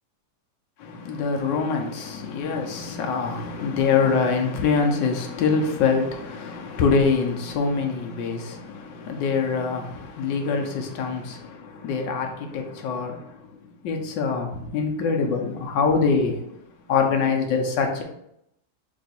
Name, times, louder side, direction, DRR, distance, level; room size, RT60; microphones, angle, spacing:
voice 1, 1.0-8.6 9.1-9.9 10.2-11.4 11.8-13.2 13.8-14.5 14.7-16.3 16.9-18.0, left 5 dB, 85° left, 1.3 m, -24 dB
3.5 x 3.1 x 4.0 m
omnidirectional pair, 2.0 m